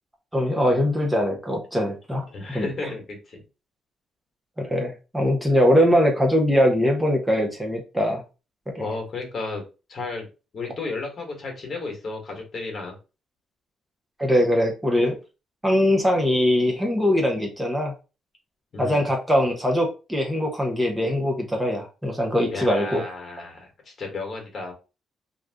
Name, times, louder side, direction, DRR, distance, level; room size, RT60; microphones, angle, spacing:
voice 1, 0.3-2.7 4.6-8.2 8.7-8.8 14.2-15.1 15.6-17.9 18.8-23.0, equal, 10° right, 1 dB, 0.8 m, -22 dB
voice 2, 2.3-3.4 8.8-9.6 9.9-10.3 10.5-13.0 18.7-19.1 22.5-24.7, left 3 dB, 50° left, 2 dB, 1.2 m, -33 dB
2.5 x 2.3 x 3.4 m, 0.31 s
cardioid pair, 90°, 0 cm